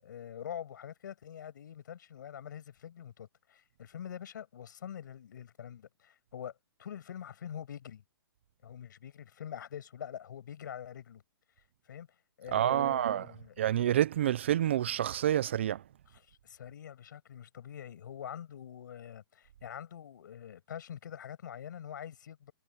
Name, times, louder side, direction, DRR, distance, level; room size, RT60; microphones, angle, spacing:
voice 1, 0.0-6.5 6.8-8.0 8.6-11.2 11.8-12.1 12.4-13.5 16.1-22.5, left 9 dB, 50° left, 7.1 m, -45 dB
voice 2, 12.5-13.3 13.6-15.8, right 11 dB, 30° right, 0.4 m, -28 dB
hypercardioid pair, 175°, 13 cm